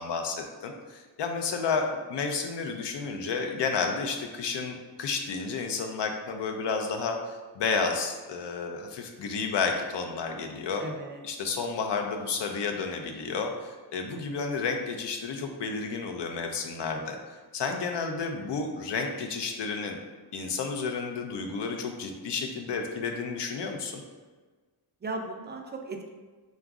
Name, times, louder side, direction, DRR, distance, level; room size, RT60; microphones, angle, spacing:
voice 1, 0.0-10.8 11.2-17.2 17.5-20.0 20.3-24.0, left 4 dB, 70° left, 4 dB, 0.5 m, -31 dB
voice 2, 10.8-11.2 16.8-17.1 25.0-26.1, right 2 dB, 25° right, 3 dB, 0.4 m, -37 dB
3.9 x 2.4 x 3.5 m, 1.4 s
wide cardioid pair, 105°, 44 cm